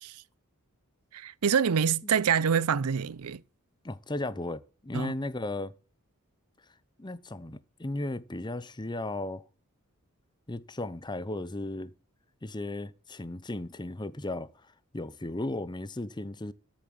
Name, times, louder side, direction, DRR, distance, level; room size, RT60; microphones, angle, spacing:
voice 1, 1.1-3.4 4.9-5.1, right 7 dB, 85° right, 0.6 m, -26 dB
voice 2, 3.8-5.7 7.0-9.4 10.5-11.9 12.4-14.5 14.9-16.5, left 2 dB, 20° left, 0.8 m, -35 dB
13.5 x 7.2 x 7.4 m
head